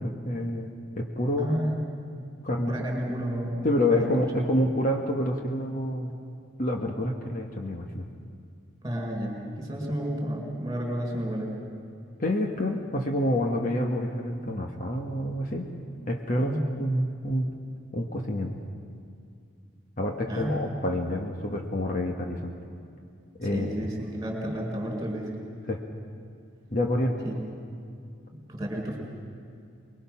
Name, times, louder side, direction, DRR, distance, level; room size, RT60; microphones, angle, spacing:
voice 1, 0.0-1.6 2.4-2.8 3.6-6.2 6.6-8.1 12.2-15.7 16.1-17.5 17.9-18.6 20.0-22.5 23.4-23.9 25.7-25.8 26.7-27.2, left 1 dB, 40° left, 2 dB, 1.3 m, -28 dB
voice 2, 1.4-1.8 2.7-4.1 8.8-11.6 16.4-16.6 20.2-20.5 23.5-25.4 27.2-27.4 28.5-29.0, equal, 20° right, 0 dB, 4.1 m, -31 dB
24.0 x 21.5 x 5.9 m, 2.3 s
head